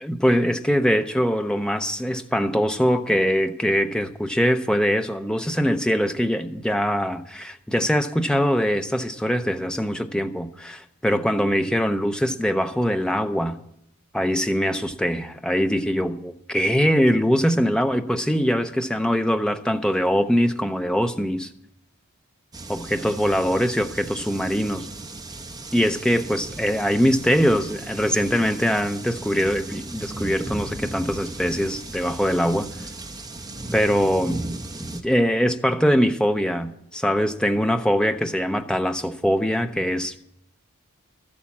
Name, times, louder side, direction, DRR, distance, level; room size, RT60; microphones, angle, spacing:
voice 1, 0.0-13.6 14.1-21.5 22.7-24.9 25.7-32.7 33.7-34.4 35.0-40.2, equal, 5° left, 0.6 m, -22 dB
sound 1, 22.5-35.0, right 2 dB, 15° right, 0.9 m, -36 dB
13.0 x 8.7 x 7.2 m
head